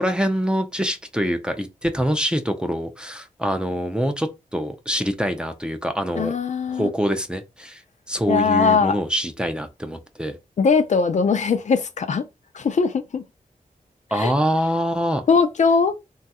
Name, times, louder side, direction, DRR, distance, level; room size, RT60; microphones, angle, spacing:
voice 1, 0.0-6.3 6.7-7.8 8.1-10.4 14.1-15.2, equal, 5° right, 0.4 m, -24 dB
voice 2, 6.2-6.9 8.3-8.9 10.6-12.2 12.5-13.2 14.1-14.3 15.3-15.9, left 5 dB, 55° left, 0.4 m, -20 dB
3.0 x 2.3 x 2.8 m
wide cardioid pair, 95°, 15 cm